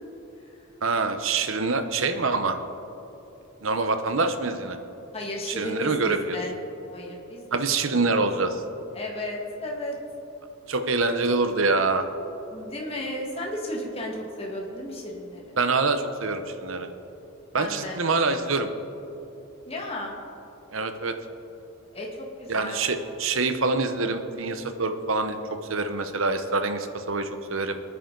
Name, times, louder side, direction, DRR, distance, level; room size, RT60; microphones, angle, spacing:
voice 1, 0.8-2.6 3.6-4.8 5.5-6.4 7.5-8.6 10.7-12.1 15.6-16.9 17.5-18.7 20.7-21.2 22.5-27.8, right 3 dB, 75° right, 8 dB, 1.0 m, -25 dB
voice 2, 5.1-6.5 6.9-7.5 7.9-8.1 8.9-10.0 12.5-15.6 17.5-18.0 19.7-20.2 21.9-22.8, left 1 dB, 30° left, -1 dB, 1.9 m, -34 dB
24.5 x 9.9 x 4.0 m, 3.0 s
head